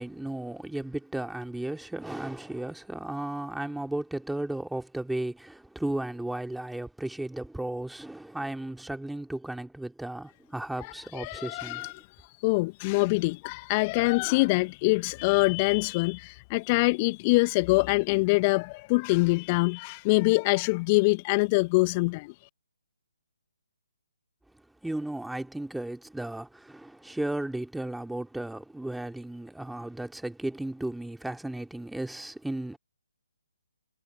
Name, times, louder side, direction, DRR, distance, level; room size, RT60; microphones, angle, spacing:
voice 1, 0.0-11.9 24.8-32.8, right 1 dB, ahead, 3.0 m, -35 dB
voice 2, 10.8-12.1 12.4-22.3, left 26 dB, 25° left, 1.5 m, -24 dB
figure-of-eight pair, 135°, 0 cm